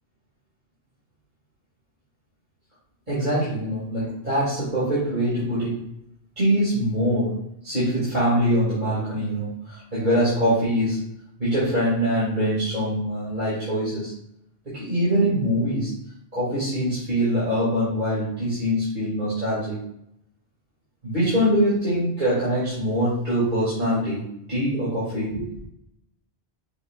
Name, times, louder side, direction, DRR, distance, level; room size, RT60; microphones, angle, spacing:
voice 1, 3.1-5.8 6.4-11.0 11.4-14.1 14.6-15.9 16.3-19.8 21.0-24.2 24.5-25.5, equal, 45° right, -11 dB, 2.7 m, -23 dB
6.5 x 5.9 x 2.5 m, 0.76 s
omnidirectional pair, 1.1 m